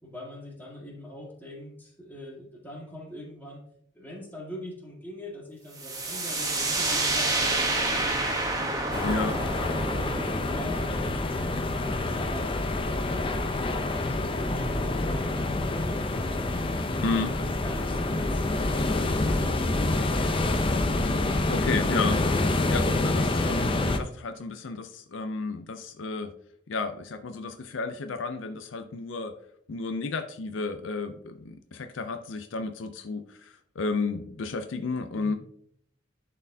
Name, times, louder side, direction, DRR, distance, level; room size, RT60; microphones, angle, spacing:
voice 1, 0.0-3.6 3.9-9.2 9.6-11.3 11.8-16.7 17.1-20.6 35.1-35.4, left 1 dB, 10° left, -2 dB, 1.8 m, -43 dB
sound 1, 5.8-13.4, right 2 dB, 20° right, 1.0 m, -29 dB
sound 2, 8.9-24.0, left 2 dB, 30° left, 0.5 m, -27 dB
voice 2, 9.0-9.4 17.0-17.3 21.2-26.3 26.7-29.3 29.7-35.3, left 4 dB, 70° left, 8 dB, 0.5 m, -32 dB
10.5 x 4.2 x 2.7 m, 0.66 s
head